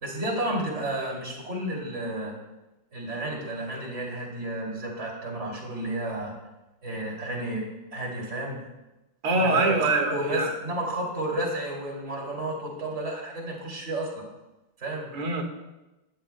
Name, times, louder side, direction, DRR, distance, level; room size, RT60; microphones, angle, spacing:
voice 1, 0.0-2.3 2.9-6.3 6.8-7.6 7.9-8.6 9.3-14.2 14.8-15.1, right 1 dB, 30° right, -1 dB, 3.2 m, -32 dB
voice 2, 9.2-10.5 15.1-15.4, right 3 dB, 85° right, 3 dB, 2.7 m, -24 dB
19.0 x 14.0 x 2.3 m, 1.0 s
omnidirectional pair, 2.4 m